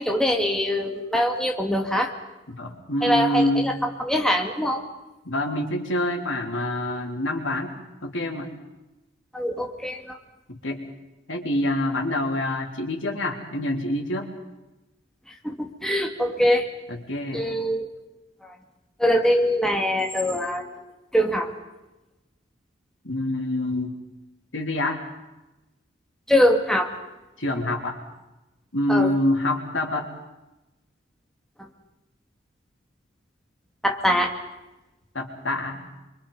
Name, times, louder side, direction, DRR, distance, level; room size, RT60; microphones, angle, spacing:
voice 1, 0.0-2.1 3.0-3.7 4.0-4.8 9.3-10.2 15.4-16.7 17.3-17.9 18.4-18.5 19.0-20.7 21.1-21.5 26.3-26.9 28.9-29.1 33.8-34.3, equal, 5° left, 2 dB, 2.3 m, -23 dB
voice 2, 2.5-3.7 5.3-7.7 8.0-8.5 10.5-10.8 11.3-14.3 16.9-17.5 23.0-24.0 24.5-25.0 27.4-28.0 28.7-30.1 35.2-35.9, left 1 dB, 85° left, 3 dB, 3.4 m, -26 dB
27.0 x 24.5 x 5.5 m, 1.0 s
head